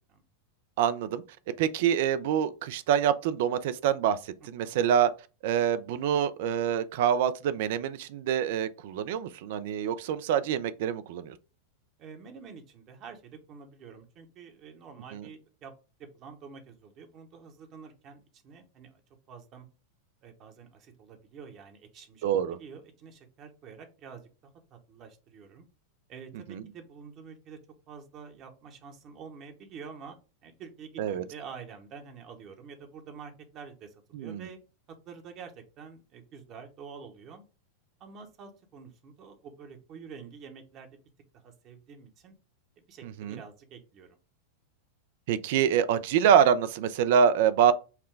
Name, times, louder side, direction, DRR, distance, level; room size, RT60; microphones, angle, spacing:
voice 1, 0.8-1.2 1.6-5.1 5.4-11.4 15.1-15.2 22.2-22.6 26.5-26.6 31.0-31.2 34.1-34.4 43.0-43.4 45.3-47.7, right 8 dB, 60° right, 0.4 m, -26 dB
voice 2, 12.0-15.7 16.0-19.0 19.3-19.7 20.2-24.3 24.7-25.7 26.1-27.6 27.9-30.2 30.4-34.6 34.9-37.4 38.0-41.0 41.3-42.3 42.8-44.2, right 6 dB, 40° right, 0.9 m, -47 dB
5.7 x 2.2 x 3.3 m
hypercardioid pair, 95°, 0 cm